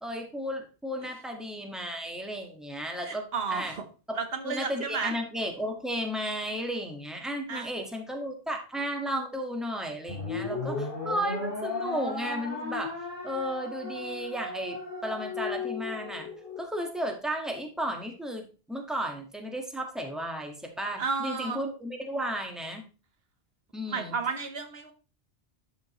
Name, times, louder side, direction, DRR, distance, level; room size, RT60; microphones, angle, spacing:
voice 1, 0.0-3.2 3.5-3.7 4.1-4.2 4.4-12.9 13.2-14.8 15.0-16.3 16.6-22.8 23.7-24.1, equal, ahead, 2 dB, 1.5 m, -34 dB
voice 2, 3.0-3.9 4.1-5.1 7.5-7.7 21.0-21.6 23.9-24.9, right 5 dB, 70° right, 7 dB, 1.2 m, -32 dB
sound 1, 10.1-16.6, left 3 dB, 60° left, 3.0 m, -35 dB
12.5 x 5.1 x 3.1 m, 0.35 s
omnidirectional pair, 1.0 m